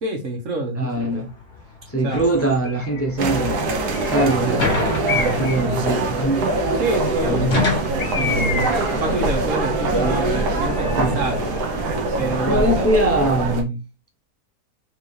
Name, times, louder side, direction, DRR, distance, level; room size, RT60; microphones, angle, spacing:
voice 1, 0.0-1.1 2.0-2.2 6.8-7.5 8.1-11.5 12.2-12.7, right 2 dB, 55° right, 1.5 m, -27 dB
voice 2, 0.8-1.3 1.9-3.8 4.1-4.8 5.1-6.5 7.2-7.6 8.4-8.7 11.0-11.2 12.5-13.8, right 1 dB, 10° left, 0.7 m, -22 dB
sound 1, 0.9-12.4, left 3 dB, 50° left, 1.9 m, -32 dB
Bird, 2.6-3.1 3.9-4.4 5.0-5.7 8.0-9.0, left 6 dB, 75° left, 0.3 m, -28 dB
sound 2, 3.2-13.6, right 2 dB, 85° right, 1.5 m, -23 dB
4.6 x 3.4 x 3.2 m
omnidirectional pair, 1.7 m